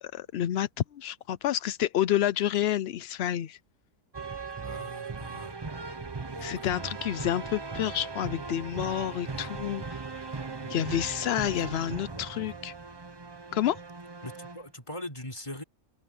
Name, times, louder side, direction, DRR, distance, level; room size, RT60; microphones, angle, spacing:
voice 1, 0.0-3.6 6.4-10.0 10.7-12.7 13.5-13.8, left 11 dB, 70° left, 0.6 m, -29 dB
sound 1, 4.1-14.7, right 4 dB, 25° right, 0.6 m, -38 dB
voice 2, 4.6-5.6 6.3-6.7 9.3-9.5 10.6-11.0 12.0-12.6 14.2-15.6, left 1 dB, 20° left, 3.7 m, -42 dB
open air
omnidirectional pair, 1.6 m